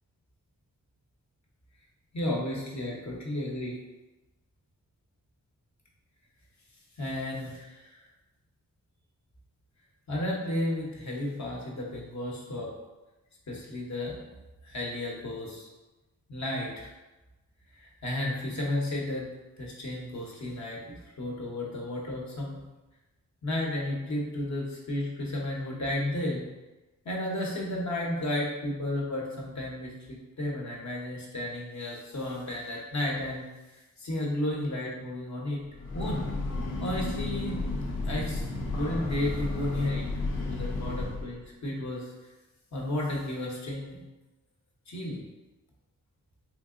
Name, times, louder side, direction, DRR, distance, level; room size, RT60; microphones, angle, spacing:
voice 1, 2.1-3.8 7.0-7.9 10.1-12.7 13.5-14.3 14.6-15.7 16.3-16.9 17.8-19.3 19.6-20.8 21.2-22.6 23.4-26.4 27.0-33.5 34.0-35.6 35.9-36.2 36.8-37.6 38.0-38.4 38.7-42.1 42.7-44.0 44.9-45.2, left 1 dB, 55° left, -3 dB, 0.9 m, -33 dB
Breathing / Train, 35.6-41.4, left 2 dB, 75° left, 0.6 m, -32 dB
3.3 x 2.8 x 2.5 m, 1.1 s
cardioid pair, 65°, 35 cm